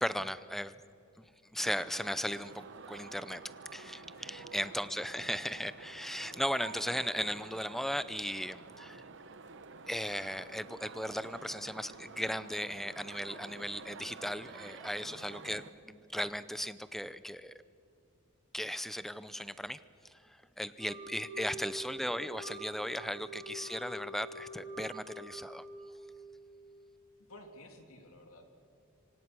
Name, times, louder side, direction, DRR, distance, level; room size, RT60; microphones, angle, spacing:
voice 1, 0.0-0.8 1.2-3.4 3.7-9.0 9.9-17.6 18.5-19.8 20.1-25.6, equal, ahead, 14 dB, 0.6 m, -37 dB
sound 1, 1.6-15.7, right 4 dB, 60° right, 1.0 m, -50 dB
voice 2, 4.1-4.6 8.7-8.9 15.0-15.3 21.4-21.8 27.3-28.5, left 1 dB, 80° left, 4 dB, 3.2 m, -55 dB
Wind instrument woodwind instrument, 20.8-26.4, equal, 25° right, 4.0 m, -46 dB
26.5 x 25.0 x 6.3 m, 2.7 s
head